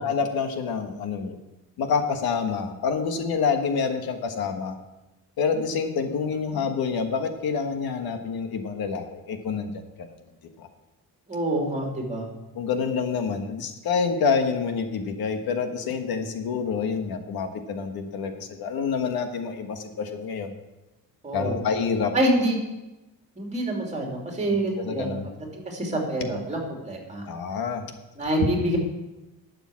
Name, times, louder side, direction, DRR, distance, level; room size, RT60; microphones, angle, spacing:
voice 1, 0.0-1.4 1.8-4.7 5.4-10.1 10.6-10.7 12.5-20.5 21.3-22.1 24.5-25.3 27.3-27.8, left 5 dB, 75° left, 6 dB, 1.5 m, -27 dB
voice 2, 11.3-12.3 21.2-21.6 22.1-22.6 23.4-25.1 25.5-27.2 28.2-28.8, right 1 dB, 20° right, 0 dB, 2.8 m, -26 dB
12.0 x 6.9 x 8.5 m, 1.0 s
cardioid pair, 170°, 37 cm